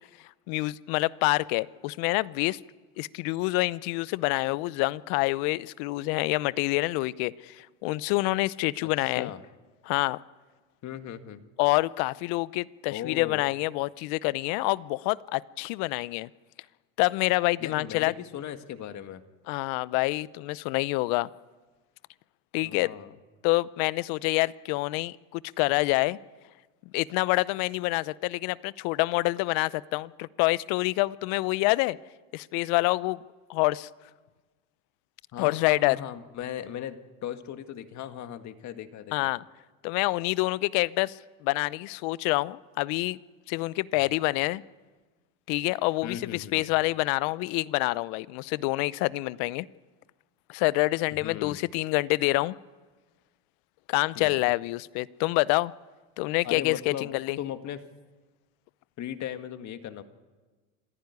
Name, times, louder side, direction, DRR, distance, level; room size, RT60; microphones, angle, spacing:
voice 1, 0.5-2.6 3.0-9.3 9.8-10.2 11.6-16.3 17.0-18.1 19.5-21.3 22.5-22.9 23.4-26.2 26.9-32.0 32.3-33.2 33.5-33.9 35.4-36.0 39.1-39.4 39.8-43.2 43.5-44.6 45.5-49.7 50.5-52.5 53.9-55.7 56.2-57.4, left 21 dB, 60° left, 0.8 m, -27 dB
voice 2, 8.8-9.4 10.8-11.4 12.9-13.4 17.6-19.2 22.6-23.2 35.3-39.3 46.0-46.7 51.2-51.6 54.2-54.4 56.4-57.1 57.4-57.8 59.0-60.0, left 10 dB, 45° left, 1.8 m, -38 dB
26.0 x 15.0 x 9.6 m
supercardioid pair, 105°, 40 cm